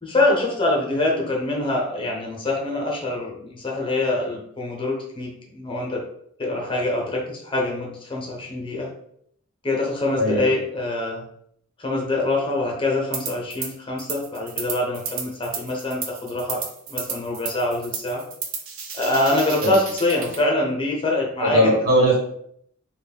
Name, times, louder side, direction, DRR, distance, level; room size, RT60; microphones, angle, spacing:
voice 1, 0.0-6.0 6.4-8.9 9.6-11.2 11.8-18.2 18.9-21.7, left 2 dB, 25° left, -1 dB, 0.7 m, -24 dB
sound 1, 13.1-13.7 14.0-20.4, right 6 dB, 65° right, 0.5 m, -33 dB
voice 2, 21.4-22.2, right 1 dB, 45° right, -3 dB, 1.3 m, -19 dB
3.1 x 2.2 x 4.1 m, 0.69 s
head